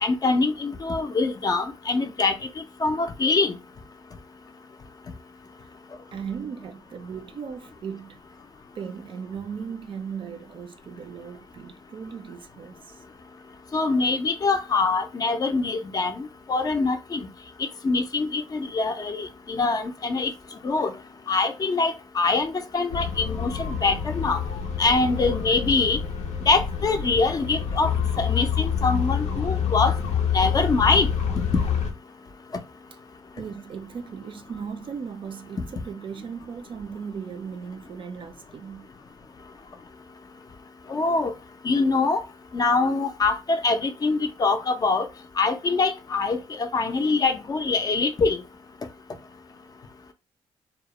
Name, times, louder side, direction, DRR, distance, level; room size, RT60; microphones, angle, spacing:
voice 1, 0.0-2.3 2.8-3.5 13.7-17.2 17.8-20.3 20.6-20.9 21.3-24.4 24.8-26.0 26.5-27.9 28.2-29.9 30.3-31.1 40.9-41.3 41.6-42.2 42.5-45.1 45.4-48.4, left 3 dB, 35° left, 0.4 m, -24 dB
voice 2, 6.1-8.2 8.8-13.0 32.2-32.3 33.4-38.9, right 6 dB, 50° right, 0.4 m, -37 dB
sound 1, 22.9-31.9, left 7 dB, 85° left, 0.5 m, -27 dB
2.3 x 2.0 x 2.9 m
cardioid pair, 80°, 11 cm